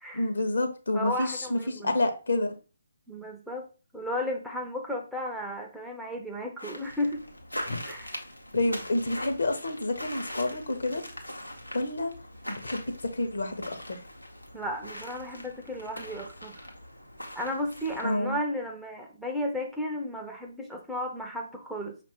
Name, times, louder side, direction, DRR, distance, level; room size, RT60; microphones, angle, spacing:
voice 1, 0.1-2.6 7.7-7.8 8.5-11.0 11.7-12.1 12.5-12.8 13.1-14.0 18.0-18.4, left 2 dB, 60° left, 5 dB, 0.7 m, -29 dB
voice 2, 0.9-2.0 3.1-3.7 3.9-7.2 7.8-8.1 14.5-16.7 17.4-22.0, left 1 dB, ahead, 0 dB, 0.4 m, -34 dB
sound 1, 6.6-18.2, left 1 dB, 90° left, 0.8 m, -42 dB
5.3 x 2.5 x 3.3 m, 0.34 s
figure-of-eight pair, 140°, 0 cm